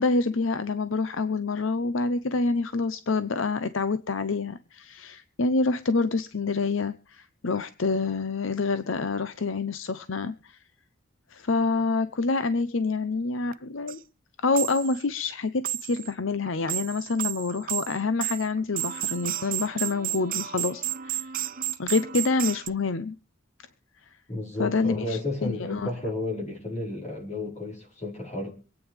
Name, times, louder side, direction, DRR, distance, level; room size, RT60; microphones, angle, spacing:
voice 1, 0.0-10.6 11.3-14.0 14.4-21.3 21.8-23.1 24.6-25.9, left 3 dB, 65° left, 0.7 m, -27 dB
sound 1, 13.5-13.6 13.9-14.0 14.5-15.0 15.6-16.1 16.4-22.7, right 13 dB, 45° right, 0.6 m, -32 dB
voice 2, 24.3-28.5, left 2 dB, 35° left, 5.1 m, -32 dB
26.0 x 9.3 x 3.4 m
head